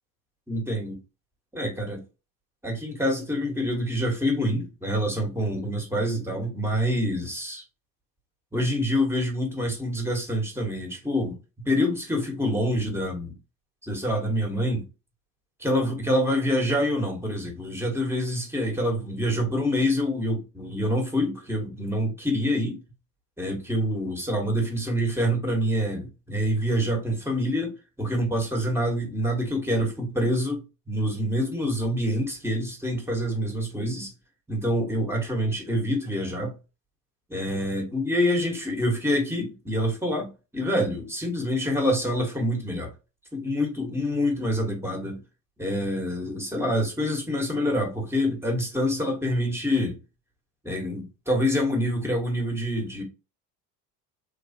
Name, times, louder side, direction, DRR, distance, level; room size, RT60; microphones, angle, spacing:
voice 1, 0.5-1.0 1.5-2.0 2.6-7.6 8.5-11.4 11.6-13.3 13.8-14.9 15.6-22.8 23.4-34.1 34.5-36.6 37.3-42.9 43.3-45.2 45.6-50.0 50.6-53.0, equal, 5° right, 1.1 m, -26 dB
3.3 x 2.4 x 2.6 m
figure-of-eight pair, 65°, 48 cm